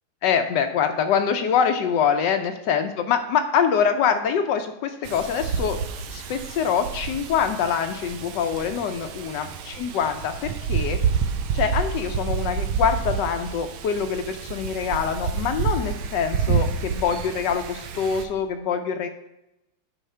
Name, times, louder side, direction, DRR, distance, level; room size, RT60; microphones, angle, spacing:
voice 1, 0.2-5.8 6.1-11.0 11.5-19.1, left 7 dB, 75° left, 7 dB, 1.1 m, -24 dB
Wind, 5.0-18.2, right 6 dB, 80° right, 1.5 m, -29 dB
11.0 x 4.9 x 3.3 m, 0.91 s
omnidirectional pair, 2.3 m